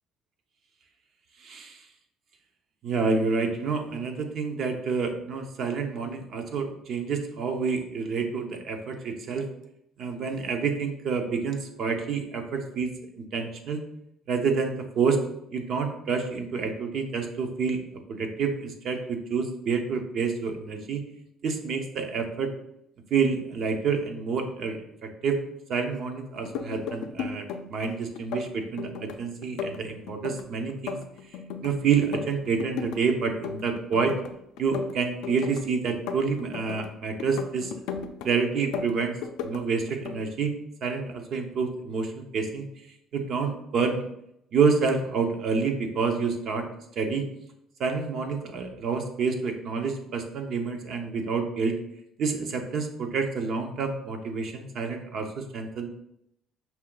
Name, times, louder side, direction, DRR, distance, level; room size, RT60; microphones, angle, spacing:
voice 1, 1.4-1.8 2.8-9.5 10.0-12.9 13.2-13.8 14.3-15.2 15.5-17.8 18.1-21.0 21.4-22.5 23.1-25.4 25.7-31.0 31.6-34.1 34.6-37.7 38.2-39.1 39.4-40.5 40.8-42.7 43.1-44.0 44.5-46.7 47.0-47.2 47.8-51.8 52.2-55.9, right 5 dB, 60° right, 5 dB, 0.6 m, -28 dB
sound 1, 26.4-27.9 28.2-29.2 29.4-31.7 32.0-33.0 33.3-34.3 34.6-36.9 37.2-38.3 38.6-39.6 39.9-40.2, left 6 dB, 85° left, 0.4 m, -35 dB
5.7 x 2.3 x 3.8 m, 0.78 s
cardioid pair, 110°, 0 cm